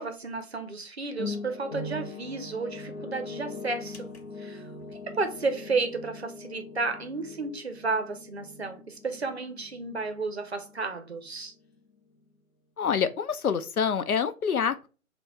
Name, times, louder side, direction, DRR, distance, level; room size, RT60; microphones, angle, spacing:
voice 1, 0.0-4.1 4.4-4.6 5.1-11.5, right 3 dB, 50° right, 0.6 m, -32 dB
sound 1, 1.2-11.3 11.6-11.8, left 3 dB, 50° left, 0.6 m, -41 dB
voice 2, 12.8-14.9, left 7 dB, 85° left, 0.6 m, -26 dB
3.8 x 2.2 x 4.0 m
figure-of-eight pair, 155°, 43 cm